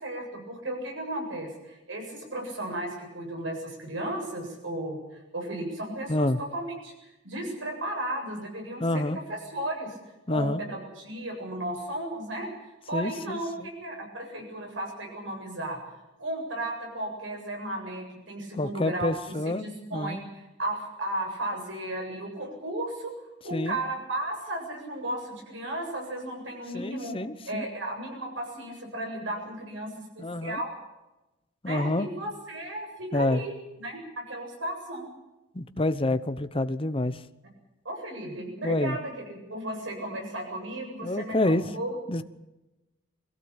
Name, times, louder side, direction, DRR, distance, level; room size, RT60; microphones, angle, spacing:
voice 1, 0.0-10.0 10.3-12.5 12.9-15.8 16.2-19.1 19.4-23.1 23.4-27.1 27.5-30.7 31.7-35.1 37.8-41.9, right 1 dB, 75° right, 2 dB, 7.8 m, -35 dB
voice 2, 8.8-9.2 10.3-10.6 12.9-13.7 18.6-19.7 19.9-20.2 23.5-23.8 26.7-27.6 30.2-30.6 31.6-32.1 33.1-33.4 35.5-37.2 38.6-39.0 41.0-41.6 42.1-42.2, left 1 dB, 30° left, 12 dB, 0.9 m, -27 dB
22.5 x 16.5 x 9.0 m, 1.0 s
head